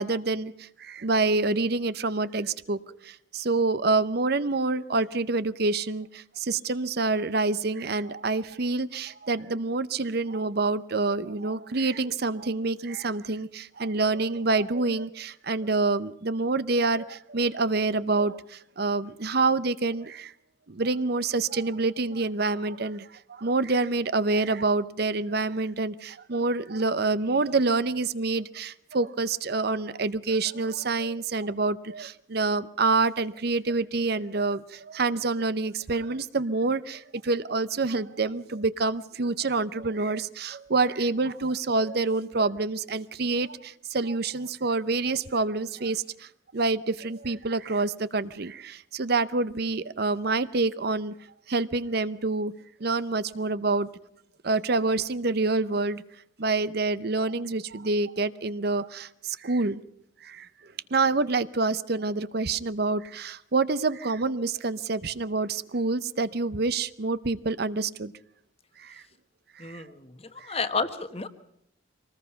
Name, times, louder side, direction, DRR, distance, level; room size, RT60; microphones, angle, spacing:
voice 1, 0.0-20.3 20.7-51.1 51.5-52.5 52.8-53.9 54.4-56.0 56.4-59.8 60.2-60.5 60.9-68.1 68.8-69.0 69.6-69.8 70.4-70.6, right 3 dB, 50° right, 16 dB, 0.7 m, -27 dB
voice 2, 69.6-70.1 70.4-71.3, left 4 dB, 30° left, 11 dB, 1.2 m, -30 dB
24.0 x 19.5 x 5.7 m, 0.75 s
head